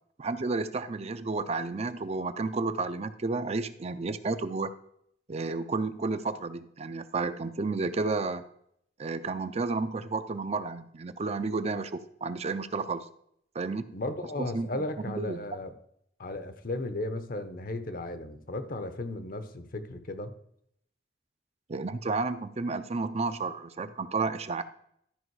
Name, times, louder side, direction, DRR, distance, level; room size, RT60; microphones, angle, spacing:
voice 1, 0.2-4.7 5.3-8.4 9.0-13.0 13.5-13.8 14.4-15.5 21.7-24.6, right 3 dB, 35° right, 11 dB, 0.5 m, -31 dB
voice 2, 13.9-15.7 16.2-20.3, left 2 dB, 55° left, 10 dB, 0.9 m, -35 dB
12.5 x 5.2 x 4.7 m, 0.70 s
head